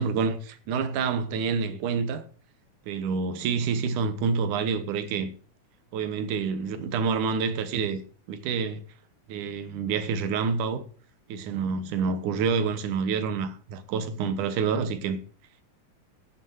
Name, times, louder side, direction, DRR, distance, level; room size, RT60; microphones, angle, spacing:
voice 1, 0.0-2.2 2.9-5.3 5.9-8.0 8.3-8.8 9.3-10.8 11.3-15.2, right 5 dB, 75° right, 2.6 m, -28 dB
12.0 x 6.4 x 6.3 m
omnidirectional pair, 3.8 m